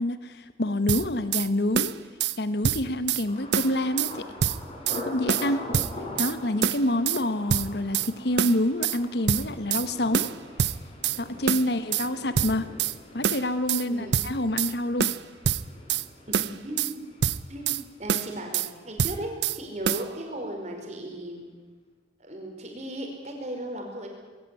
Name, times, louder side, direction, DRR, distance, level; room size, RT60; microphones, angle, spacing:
voice 1, 0.0-1.9 2.4-4.3 5.0-5.6 6.2-10.3 11.2-12.7 13.1-15.1, left 1 dB, 60° left, 12 dB, 1.1 m, -27 dB
sound 1, 0.9-1.5 1.8-2.4 2.6-3.2 3.5-4.1 4.4-5.0 5.3-6.3 6.6-7.2 7.5-8.1 8.4-9.0 9.3-9.9 10.1-11.2 11.5-12.1 12.4-13.0 13.2-13.8 14.1-14.7 15.0-16.1 16.3-16.9 17.2-17.8 18.1-18.7 19.0-19.6 19.9-20.1, right 8 dB, 70° right, 0.6 m, -26 dB
Thunder, 3.3-19.0 19.3-19.9 20.3-20.6, left 1 dB, 30° left, 4.3 m, -43 dB
voice 2, 6.5-6.9 11.5-11.8 13.8-14.2 16.3-17.0 17.5-21.5 22.2-24.1, right 1 dB, 35° right, 2 dB, 4.9 m, -37 dB
21.0 x 16.5 x 9.7 m, 1.4 s
head